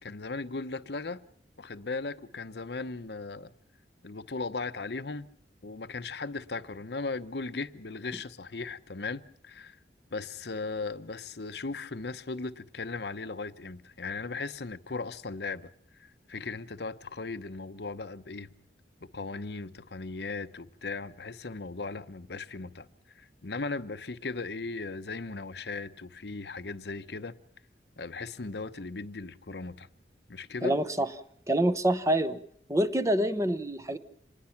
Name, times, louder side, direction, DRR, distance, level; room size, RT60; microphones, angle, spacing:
voice 1, 0.0-1.2 1.6-3.5 4.0-5.3 5.6-9.8 10.1-15.7 16.0-18.5 19.1-22.9 23.1-27.3 28.0-29.9 30.3-30.8, left 3 dB, 65° left, 0.9 m, -37 dB
voice 2, 30.6-31.1 31.5-32.4 32.7-34.0, right 1 dB, 15° right, 0.9 m, -26 dB
26.5 x 20.5 x 5.9 m
head